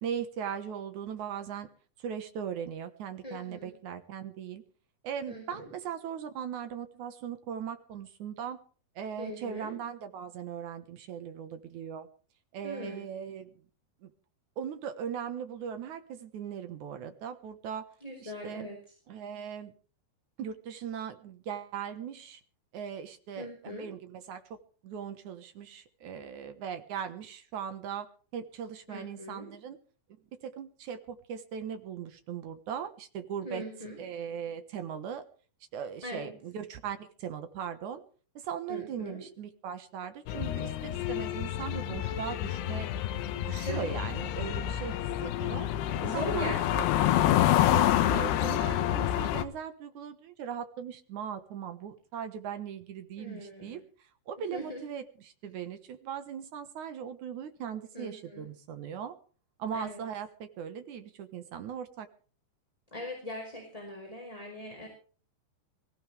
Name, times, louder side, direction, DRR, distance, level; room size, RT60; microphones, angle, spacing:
voice 1, 0.0-1.7 2.0-4.6 5.0-8.6 9.0-12.1 12.5-13.5 14.0-14.1 14.6-17.9 18.2-18.7 19.1-19.7 20.4-22.4 22.7-24.6 24.8-28.1 28.3-29.8 30.4-33.6 34.0-35.2 35.7-38.0 38.4-42.9 43.3-45.7 46.0-46.9 47.7-59.1 59.6-62.1, right 8 dB, 65° right, 9 dB, 2.0 m, -39 dB
voice 2, 3.2-3.7 5.3-5.7 9.2-9.7 12.6-13.0 18.0-18.8 23.4-23.9 28.9-29.5 33.4-34.0 36.0-36.4 38.7-39.2 43.6-44.1 45.9-47.4 53.2-53.8 54.5-54.8 57.9-58.5 59.7-60.0 62.9-64.9, equal, 10° left, 1 dB, 4.3 m, -40 dB
sound 1, 40.3-49.5, left 12 dB, 75° left, 3.0 m, -28 dB
23.5 x 15.5 x 3.4 m, 0.41 s
omnidirectional pair, 5.0 m